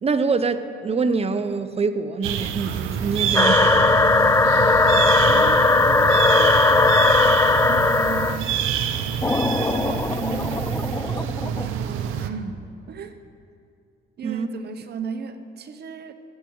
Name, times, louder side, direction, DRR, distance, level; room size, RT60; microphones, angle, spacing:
voice 1, 0.0-4.0 14.2-14.5, right 4 dB, 30° right, 11 dB, 0.7 m, -25 dB
sound 1, 2.2-12.3, right 8 dB, 90° right, 0.7 m, -26 dB
sound 2, 3.3-8.4 9.2-11.7, left 3 dB, 15° left, 0.4 m, -18 dB
voice 2, 5.3-7.2 7.7-8.7 9.6-13.2 14.2-16.1, right 6 dB, 55° right, 9 dB, 0.9 m, -36 dB
16.0 x 8.5 x 4.7 m, 2.4 s
cardioid pair, 90°, 20 cm